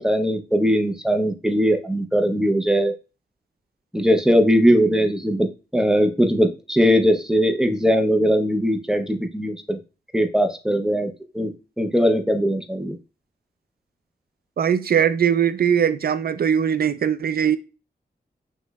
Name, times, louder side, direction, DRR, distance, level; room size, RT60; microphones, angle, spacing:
voice 1, 0.0-2.9 3.9-5.5 5.7-9.8 10.1-13.0, equal, 5° right, 7 dB, 0.5 m, -20 dB
voice 2, 14.6-17.6, right 8 dB, 60° right, 12 dB, 0.4 m, -20 dB
6.1 x 3.0 x 2.2 m, 0.32 s
wide cardioid pair, 100°, 18 cm